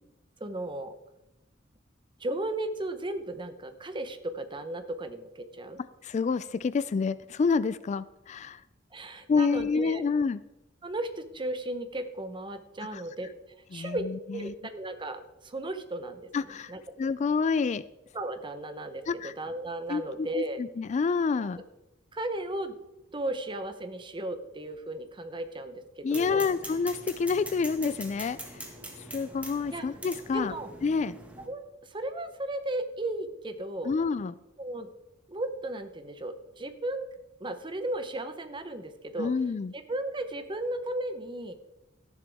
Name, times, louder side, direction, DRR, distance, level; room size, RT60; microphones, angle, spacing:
voice 1, 0.4-0.9 2.2-5.8 8.9-10.1 10.8-13.3 13.7-16.3 16.7-16.8 18.1-20.6 22.1-22.7 23.1-26.4 29.7-29.8 30.3-30.7 31.5-33.9 34.6-34.9 35.3-37.1 37.4-39.3 39.7-41.5, right 1 dB, 25° right, 8 dB, 0.9 m, -35 dB
voice 2, 6.0-8.6 9.3-10.4 12.9-13.0 13.7-14.5 16.3-16.7 17.0-17.8 19.1-19.3 19.9-21.6 26.0-28.6 29.0-30.5 30.8-31.2 33.8-34.3 39.2-39.7, left 5 dB, 35° left, 16 dB, 0.3 m, -28 dB
sound 1, 26.1-31.5, right 1 dB, 5° right, 1.8 m, -43 dB
13.5 x 11.0 x 3.5 m, 0.94 s
head